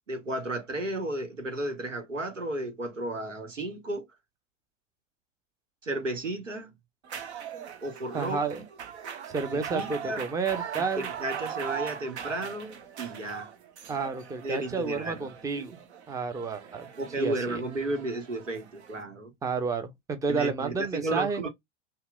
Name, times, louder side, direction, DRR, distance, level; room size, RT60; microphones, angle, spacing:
voice 1, 0.1-4.1 5.8-6.7 7.8-8.6 9.5-10.3 11.0-13.5 14.4-15.3 17.0-19.3 20.3-21.5, right 2 dB, 85° right, 1.0 m, -33 dB
sound 1, 7.0-19.0, right 7 dB, 60° right, 0.8 m, -40 dB
voice 2, 8.1-8.6 9.3-11.1 13.9-15.8 16.1-16.9 17.2-17.6 19.4-21.4, right 4 dB, 10° right, 0.5 m, -31 dB
5.6 x 2.2 x 2.2 m
figure-of-eight pair, 90°, 37 cm